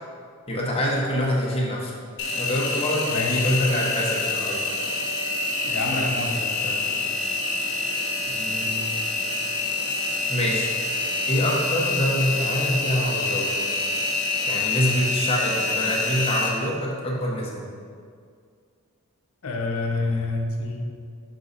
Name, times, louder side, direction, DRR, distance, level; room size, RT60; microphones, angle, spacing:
voice 1, 0.5-1.9 2.4-4.6 5.9-6.8 8.3-9.0 10.3-10.7 11.3-13.5 14.5-17.6, equal, 25° left, -3 dB, 1.0 m, -26 dB
Engine, 2.2-16.5, left 3 dB, 55° left, 1.1 m, -26 dB
voice 2, 3.1-3.5 5.6-6.4 19.4-20.8, left 2 dB, 75° left, 1 dB, 0.8 m, -27 dB
6.4 x 4.1 x 4.0 m, 2.1 s
head